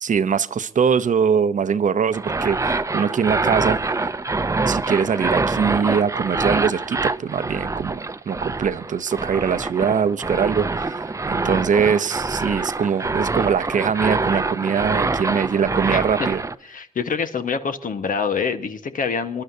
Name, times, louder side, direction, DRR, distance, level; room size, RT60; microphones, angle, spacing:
voice 1, 0.0-3.9 4.6-16.4, right 7 dB, 65° right, 14 dB, 0.6 m, -22 dB
sound 1, 2.1-16.5, right 3 dB, 20° right, 0.5 m, -25 dB
voice 2, 16.6-19.4, left 5 dB, 75° left, 8 dB, 1.2 m, -25 dB
27.0 x 11.5 x 2.7 m, 0.67 s
wide cardioid pair, 100°, 14 cm